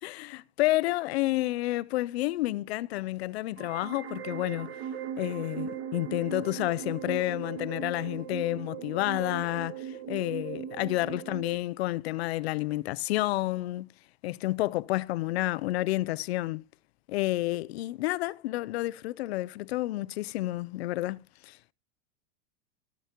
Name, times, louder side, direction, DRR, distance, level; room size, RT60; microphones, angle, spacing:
voice 1, 0.0-4.8 5.2-13.9 14.2-16.6 17.1-21.6, left 17 dB, 75° left, 0.6 m, -30 dB
sound 1, 3.6-11.6, right 8 dB, 60° right, 2.2 m, -38 dB
13.5 x 9.1 x 2.9 m
supercardioid pair, 155°, 32 cm